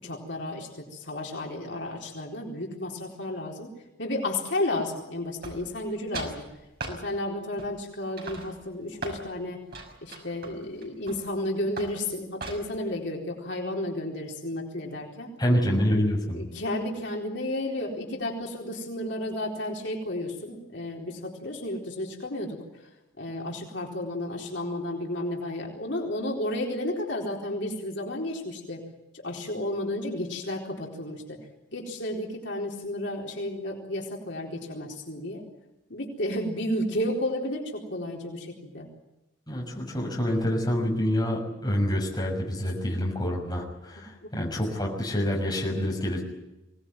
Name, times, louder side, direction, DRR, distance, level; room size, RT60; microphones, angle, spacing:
voice 1, 0.0-3.7 4.0-6.4 6.9-9.6 10.0-15.3 16.3-22.9 23.2-28.8 29.1-31.4 31.7-35.4 35.9-38.9 44.2-44.3, left 1 dB, 65° left, -1 dB, 4.2 m, -32 dB
sound 1, 5.4-5.9 6.1-6.4 6.8-7.0 7.6-7.9 8.2-9.2 9.7-11.3 11.8-12.0 12.4-12.8, right 2 dB, 50° right, 6.0 m, -38 dB
voice 2, 15.4-16.4 39.5-46.2, equal, 20° left, -2 dB, 6.2 m, -27 dB
24.0 x 19.0 x 9.3 m, 0.96 s
head